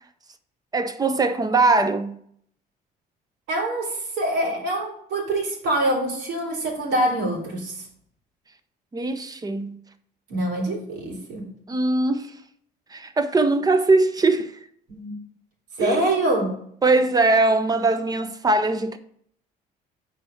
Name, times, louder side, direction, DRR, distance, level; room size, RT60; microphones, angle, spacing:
voice 1, 0.7-2.2 8.9-9.8 11.7-12.3 12.9-14.6 15.8-16.0 16.8-19.0, right 3 dB, 20° right, 0.8 m, -21 dB
voice 2, 3.5-7.9 10.3-11.5 14.9-15.2 15.8-16.5, right 1 dB, 85° right, 3.3 m, -25 dB
6.7 x 4.5 x 6.5 m
cardioid pair, 110°, 17 cm